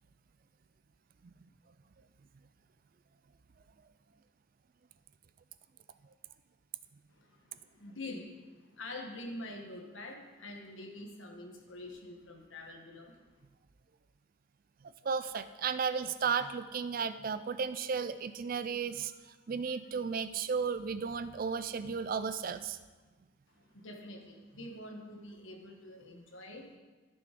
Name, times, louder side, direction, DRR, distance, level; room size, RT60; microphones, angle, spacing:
voice 1, 7.1-13.2 23.5-26.8, left 1 dB, 65° left, 2 dB, 1.5 m, -46 dB
voice 2, 15.0-22.8, right 6 dB, 40° right, 13 dB, 0.4 m, -34 dB
12.5 x 7.0 x 5.1 m, 1.3 s
head